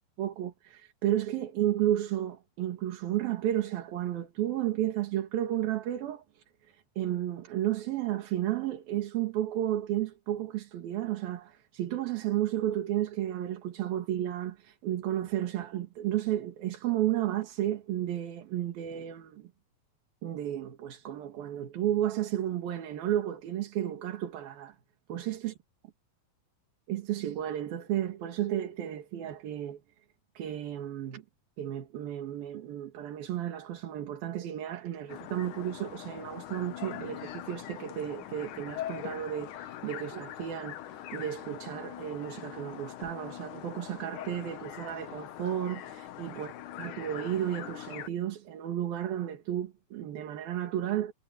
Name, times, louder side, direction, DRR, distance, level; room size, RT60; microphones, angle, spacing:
voice 1, 0.2-19.5 20.2-24.8 25.1-25.5 26.9-29.8 30.4-31.2 31.6-46.5 46.8-51.1, right 12 dB, 80° right, 3.8 m, -33 dB
sound 1, 35.1-48.1, left 12 dB, 70° left, 2.4 m, -42 dB
omnidirectional pair, 4.1 m